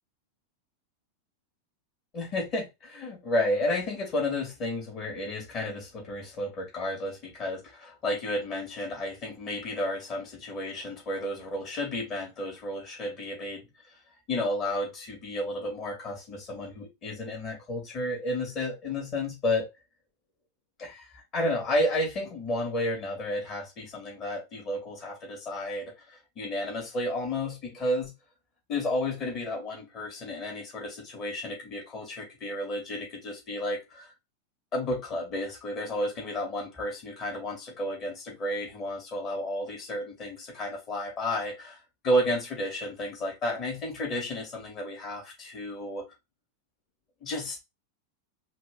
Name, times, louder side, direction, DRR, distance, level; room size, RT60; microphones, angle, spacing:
voice 1, 2.1-13.7 14.3-19.7 20.8-28.1 28.7-34.1 34.7-41.8 42.0-46.0 47.2-47.6, left 1 dB, 30° left, 2.6 m, -32 dB
4.7 x 3.0 x 3.8 m
figure-of-eight pair, 90°, 0 cm